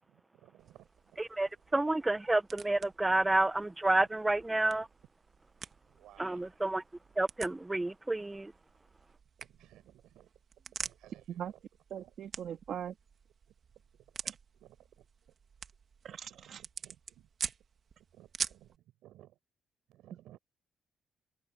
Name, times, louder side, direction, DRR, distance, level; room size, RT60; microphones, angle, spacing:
voice 1, 0.0-1.2 4.7-4.9 5.8-6.5 9.4-10.3 10.7-11.6 11.9-12.1 12.5-12.6 13.5-14.3 14.5-15.1 16.3-17.3 18.1-19.4 19.9-20.4, right 14 dB, 85° right, 7.2 m, -59 dB
sound 1, 0.6-18.8, right 6 dB, 50° right, 1.4 m, -47 dB
voice 2, 1.2-4.9 6.2-6.8 7.2-8.5, right 2 dB, 15° right, 0.4 m, -30 dB
voice 3, 11.9-12.9 14.2-14.3 16.0-16.6, right 9 dB, 65° right, 1.6 m, -41 dB
cardioid pair, 90°, 0 cm